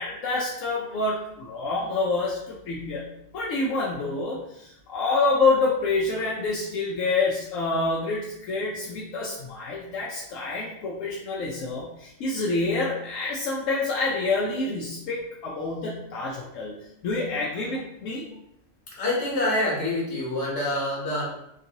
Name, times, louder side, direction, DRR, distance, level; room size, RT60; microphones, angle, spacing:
voice 1, 0.0-3.1 3.3-16.8 17.0-18.3, left 3 dB, 85° left, -4 dB, 0.9 m, -27 dB
voice 2, 19.0-21.2, left 1 dB, 60° left, -5 dB, 1.3 m, -26 dB
3.0 x 2.5 x 2.7 m, 0.80 s
omnidirectional pair, 1.3 m